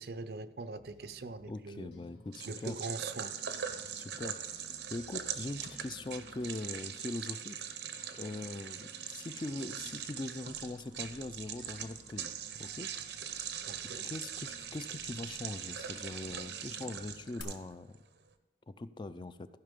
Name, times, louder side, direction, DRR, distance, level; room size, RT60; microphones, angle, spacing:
voice 1, 0.0-1.9 2.5-3.4 13.7-14.1, right 3 dB, 60° right, 13 dB, 0.5 m, -42 dB
sound 1, 0.7-17.7, equal, 45° left, 1.5 m, -62 dB
sound 2, 1.0-17.4, left 3 dB, 85° left, 1.6 m, -59 dB
voice 2, 1.5-2.8 3.9-4.4 4.9-7.6 8.1-12.9 14.0-18.0 18.7-19.5, left 2 dB, 25° left, 12 dB, 0.4 m, -41 dB
sound 3, 2.3-17.9, right 8 dB, 85° right, 0.8 m, -42 dB
14.5 x 5.7 x 5.2 m, 1.1 s
head